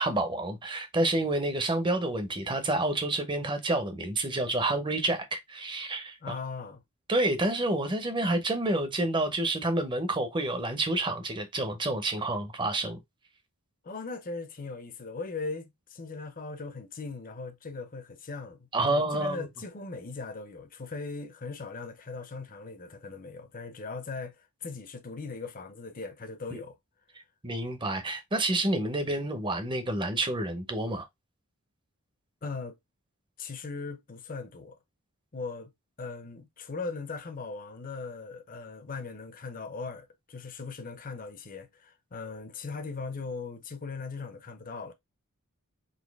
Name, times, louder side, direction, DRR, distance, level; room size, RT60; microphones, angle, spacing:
voice 1, 0.0-6.3 7.1-13.0 18.7-19.5 26.5-26.6 27.4-31.1, right 2 dB, 20° right, 0.8 m, -29 dB
voice 2, 6.2-6.8 13.8-26.8 32.4-32.8 33.4-34.8 35.3-35.7 36.0-44.9, left 4 dB, 40° left, 0.7 m, -39 dB
4.1 x 2.8 x 3.4 m
head